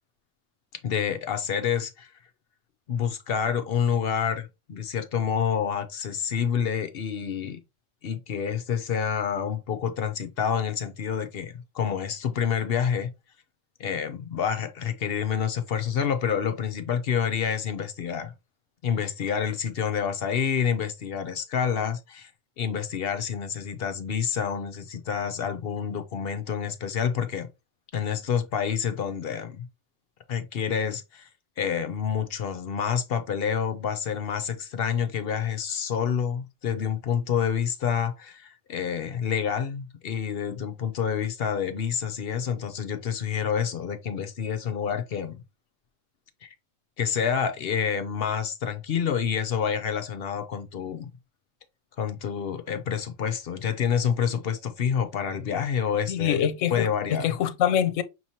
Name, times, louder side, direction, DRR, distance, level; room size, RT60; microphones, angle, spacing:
voice 1, 0.8-2.1 2.9-7.6 8.0-13.1 13.8-18.3 18.8-22.3 22.6-27.5 27.9-29.7 30.3-31.3 31.6-45.4 46.4-46.5 47.0-51.2 52.0-57.3, left 7 dB, 60° left, 0.8 m, -28 dB
voice 2, 56.1-58.0, left 10 dB, 80° left, 0.9 m, -25 dB
6.1 x 2.9 x 2.8 m
omnidirectional pair, 1.3 m